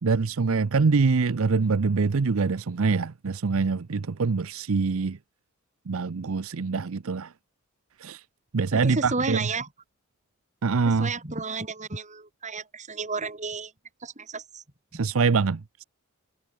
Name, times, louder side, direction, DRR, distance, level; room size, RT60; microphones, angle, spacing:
voice 1, 0.0-5.2 5.9-7.3 8.0-8.2 8.5-9.5 10.6-11.1 14.9-15.8, right 4 dB, 70° right, 0.6 m, -24 dB
voice 2, 8.7-9.7 10.9-13.7 14.0-14.6 14.9-15.0, right 3 dB, 35° right, 3.4 m, -32 dB
head